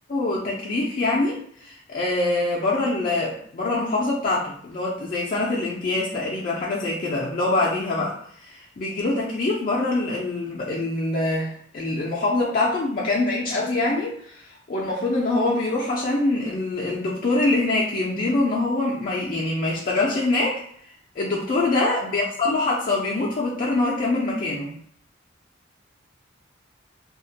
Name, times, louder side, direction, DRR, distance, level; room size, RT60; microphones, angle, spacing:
voice 1, 0.1-20.6 21.2-24.7, left 2 dB, 45° left, -4 dB, 0.3 m, -24 dB
2.3 x 2.1 x 2.7 m, 0.62 s
head